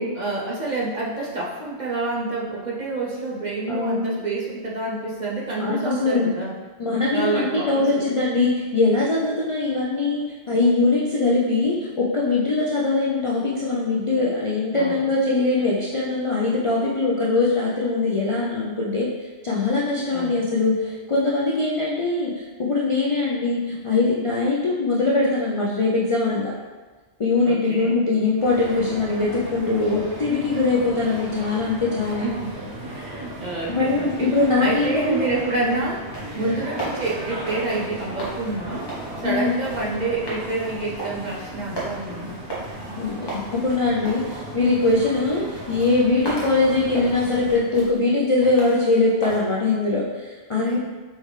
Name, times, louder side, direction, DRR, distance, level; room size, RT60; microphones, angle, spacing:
voice 1, 0.1-6.5 7.1-8.0 14.7-15.1 20.1-20.5 27.4-28.0 32.2-34.3 34.6-36.0 36.4-38.9 39.2-42.4 50.6-50.8, right 2 dB, 45° right, -4 dB, 0.8 m, -28 dB
voice 2, 3.7-4.2 5.6-6.3 6.8-19.1 19.4-26.5 27.2-32.3 33.7-35.2 35.6-35.7 39.2-39.5 43.0-50.8, left 3 dB, 45° left, -5 dB, 0.4 m, -22 dB
sound 1, 28.4-47.6, right 1 dB, 60° right, 1.2 m, -36 dB
sound 2, 36.0-49.4, right 2 dB, 25° left, 1.0 m, -37 dB
4.5 x 3.4 x 3.2 m, 1.3 s
omnidirectional pair, 1.2 m